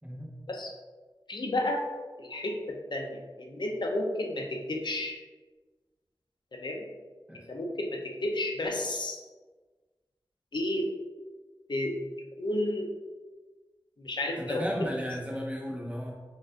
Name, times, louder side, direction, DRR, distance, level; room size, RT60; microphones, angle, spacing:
voice 1, 1.3-1.8 2.2-5.1 6.5-6.8 7.5-9.2 10.5-10.9 11.7-11.9 12.4-12.9 14.0-14.9, left 1 dB, 65° left, 1 dB, 0.6 m, -32 dB
voice 2, 14.4-16.1, equal, 15° right, -2 dB, 0.9 m, -34 dB
4.4 x 2.5 x 3.8 m, 1.3 s
wide cardioid pair, 70°, 8 cm